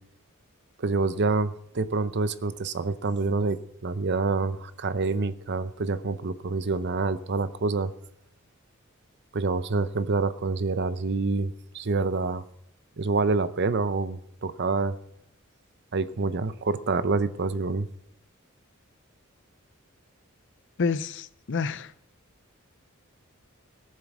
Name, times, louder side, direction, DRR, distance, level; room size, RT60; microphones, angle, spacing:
voice 1, 0.8-3.6 3.8-7.9 9.3-12.4 13.0-15.0 15.9-17.9, right 3 dB, 55° right, 0.7 m, -27 dB
voice 2, 20.8-21.9, left 5 dB, 60° left, 0.6 m, -28 dB
18.0 x 7.6 x 6.2 m
head